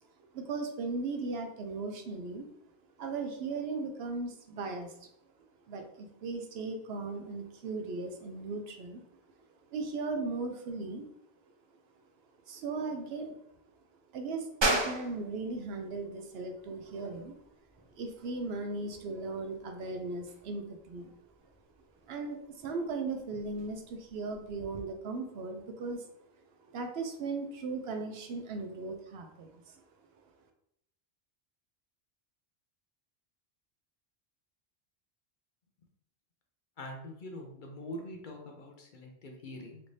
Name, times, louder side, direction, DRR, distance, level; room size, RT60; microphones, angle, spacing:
voice 1, 0.3-2.5 3.0-5.1 5.7-9.0 9.7-11.0 12.5-13.4 14.1-17.4 18.0-21.1 22.1-26.1 26.7-29.8, right 3 dB, 70° right, 5 dB, 0.8 m, -37 dB
sound 1, 14.6-24.8, right 2 dB, 45° right, 0.3 m, -39 dB
voice 2, 36.8-39.8, left 1 dB, 55° left, 2 dB, 0.7 m, -44 dB
3.2 x 3.2 x 2.6 m, 0.76 s
omnidirectional pair, 1.1 m